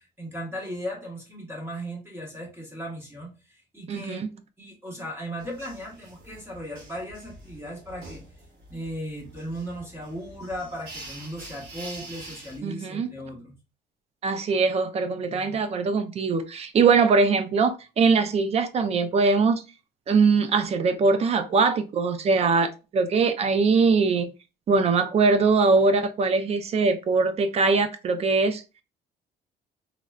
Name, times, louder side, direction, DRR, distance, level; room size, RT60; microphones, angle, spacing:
voice 1, 0.0-4.2 4.6-8.2 8.7-13.6, equal, 15° right, 1.1 m, -37 dB
voice 2, 3.9-4.3 12.6-13.1 14.2-19.6 20.1-24.3 24.7-28.6, right 4 dB, 40° right, 0.4 m, -22 dB
sound 1, 5.4-12.6, right 2 dB, 65° right, 1.6 m, -45 dB
3.2 x 2.3 x 2.3 m
cardioid pair, 110°, 17 cm